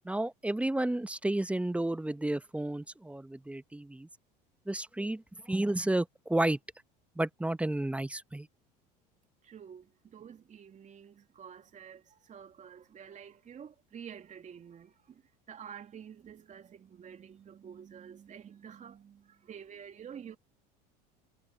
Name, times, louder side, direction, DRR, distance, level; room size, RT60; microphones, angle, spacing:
voice 1, 0.0-4.1 4.7-6.6 7.2-8.5, right 1 dB, 5° right, 1.0 m, -31 dB
voice 2, 9.4-15.2 15.5-20.4, right 8 dB, 35° right, 2.7 m, -49 dB
hypercardioid pair, 80°, 21 cm